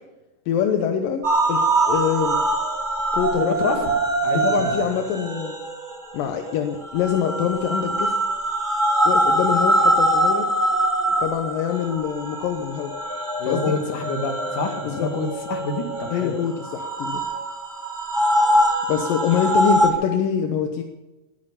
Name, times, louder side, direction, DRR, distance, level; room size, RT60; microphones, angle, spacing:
voice 1, 0.5-1.2 1.5-2.4 3.1-3.6 4.3-5.6 6.1-8.2 9.0-10.5 11.2-12.9 13.4-13.7 14.9-15.1 16.1-17.2 18.9-20.8, left 8 dB, 80° left, 5 dB, 2.7 m, -24 dB
sound 1, 1.2-19.9, right 1 dB, 15° right, 1.7 m, -23 dB
voice 2, 3.4-3.8 4.2-4.8 13.4-16.4, left 4 dB, 65° left, 3 dB, 3.5 m, -27 dB
21.0 x 8.7 x 6.9 m, 1.1 s
omnidirectional pair, 3.9 m